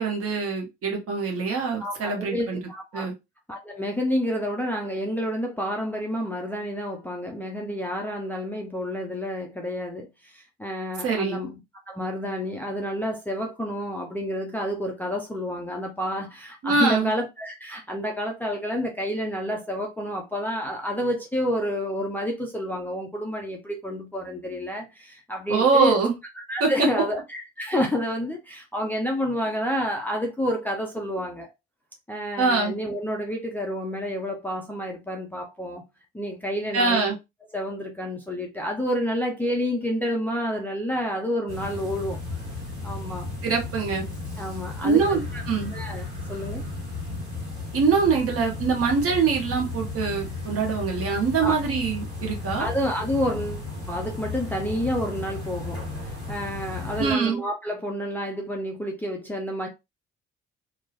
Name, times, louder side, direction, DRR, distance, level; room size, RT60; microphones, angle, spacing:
voice 1, 0.0-2.6 2.9-3.1 11.0-11.4 16.6-17.1 25.5-26.1 26.6-26.7 32.4-32.7 36.7-37.2 43.4-44.0 44.8-45.7 47.7-52.7 57.0-57.4, right 4 dB, 45° right, 1.2 m, -23 dB
voice 2, 1.8-3.1 3.5-11.6 11.9-26.0 26.4-31.5 32.1-35.8 36.1-37.0 37.5-42.2 42.8-43.3 44.4-45.4 45.7-46.6 51.4-51.6 52.6-59.7, equal, 5° left, 0.5 m, -29 dB
sound 1, 41.5-57.1, left 3 dB, 90° right, 0.8 m, -34 dB
2.9 x 2.0 x 2.8 m
figure-of-eight pair, 45°, 33 cm